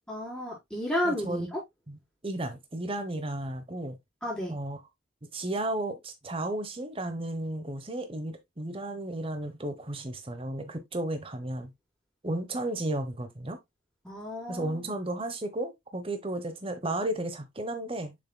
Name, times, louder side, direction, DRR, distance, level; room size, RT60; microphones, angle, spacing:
voice 1, 0.1-1.6 4.2-4.5 14.0-15.0, left 1 dB, 5° left, 4.2 m, -32 dB
voice 2, 1.0-1.5 1.9-2.0 2.2-4.0 4.5-4.8 5.2-11.7 12.2-13.6 14.5-18.2, right 1 dB, 25° right, 1.0 m, -33 dB
7.0 x 6.5 x 2.2 m
head